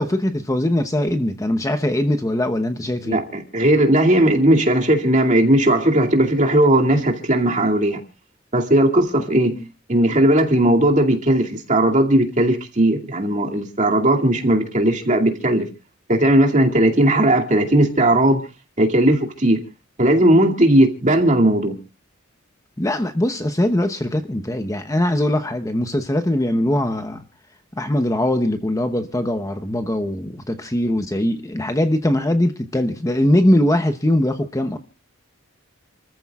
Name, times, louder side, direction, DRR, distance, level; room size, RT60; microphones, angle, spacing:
voice 1, 0.0-3.2 22.8-27.2 27.8-34.8, left 1 dB, 15° left, 0.9 m, -21 dB
voice 2, 3.1-8.0 8.5-9.6 9.9-15.7 16.1-18.4 18.8-19.6 20.0-21.8, right 1 dB, 40° right, 2.4 m, -17 dB
29.5 x 14.0 x 2.4 m
head